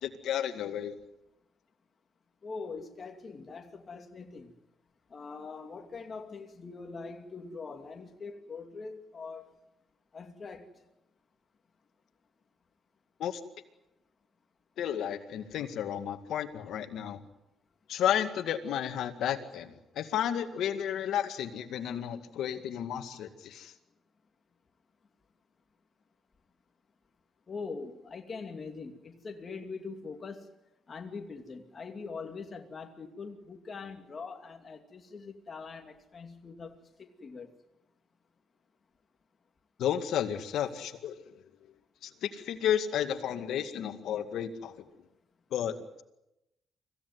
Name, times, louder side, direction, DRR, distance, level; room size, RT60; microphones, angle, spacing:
voice 1, 0.0-1.0 13.2-13.4 14.8-17.2 17.9-23.7 39.8-41.2 42.0-44.8 45.5-46.0, left 9 dB, 80° left, 2.1 m, -32 dB
voice 2, 2.4-4.5 5.1-9.5 10.1-10.7 27.5-30.5 30.9-37.5, left 4 dB, 40° left, 2.6 m, -43 dB
25.5 x 16.5 x 9.6 m
cardioid pair, 90°, 0 cm